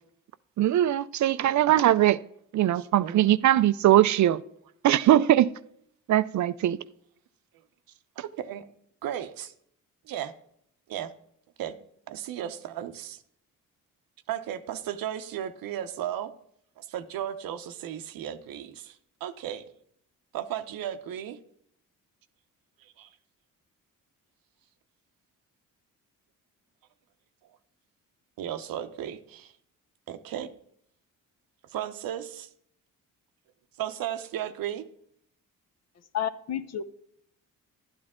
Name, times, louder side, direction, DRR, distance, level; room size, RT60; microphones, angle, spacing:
voice 1, 0.6-2.2 2.5-4.4 4.8-5.5 6.1-6.8, right 13 dB, 55° right, 0.5 m, -21 dB
voice 2, 2.7-3.2 8.2-8.7 9.0-9.5 10.0-10.3 10.9-11.1 11.6-11.8 12.1-13.2 14.3-16.3 16.8-19.6 20.3-21.4 22.8-23.1 28.4-29.5 30.1-30.6 31.7-32.5 33.8-34.8, right 10 dB, 80° right, 0.8 m, -35 dB
voice 3, 36.1-36.8, left 9 dB, 50° left, 0.8 m, -30 dB
11.5 x 9.7 x 3.7 m
cardioid pair, 80°, 34 cm